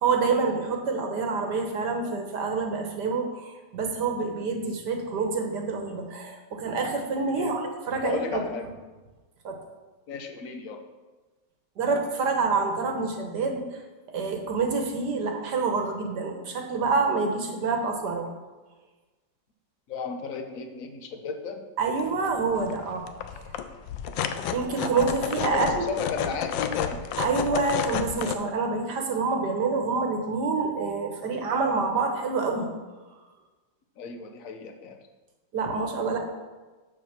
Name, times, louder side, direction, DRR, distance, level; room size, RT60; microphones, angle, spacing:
voice 1, 0.0-7.6 7.9-8.4 9.4-9.6 11.8-13.8 14.1-18.3 21.8-23.0 23.3-23.4 24.5-25.8 27.2-32.7 35.5-36.2, right 4 dB, 65° right, 3 dB, 1.6 m, -27 dB
voice 2, 8.0-8.7 10.1-10.8 19.9-21.6 25.5-27.0 34.0-35.0, left 5 dB, 55° left, 5 dB, 1.1 m, -34 dB
sound 1, 22.0-22.1 22.5-22.7 23.0-28.4, left 8 dB, 80° left, 1.3 m, -31 dB
7.6 x 6.6 x 5.9 m, 1.3 s
omnidirectional pair, 2.1 m